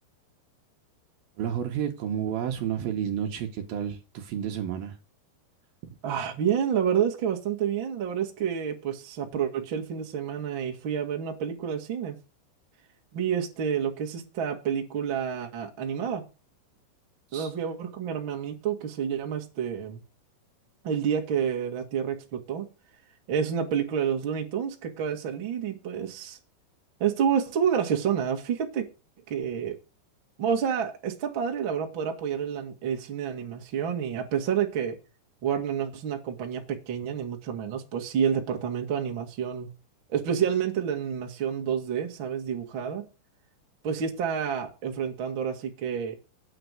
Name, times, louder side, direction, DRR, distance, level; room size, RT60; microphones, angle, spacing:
voice 1, 1.4-5.0 17.3-17.5, right 9 dB, 65° right, 2.7 m, -31 dB
voice 2, 6.0-12.2 13.1-16.2 17.3-20.0 20.8-22.7 23.3-26.4 27.0-28.9 29.3-29.8 30.4-35.0 35.4-39.7 40.1-43.0 43.8-46.2, right 8 dB, 45° right, 1.7 m, -29 dB
9.1 x 5.7 x 8.1 m
omnidirectional pair, 5.1 m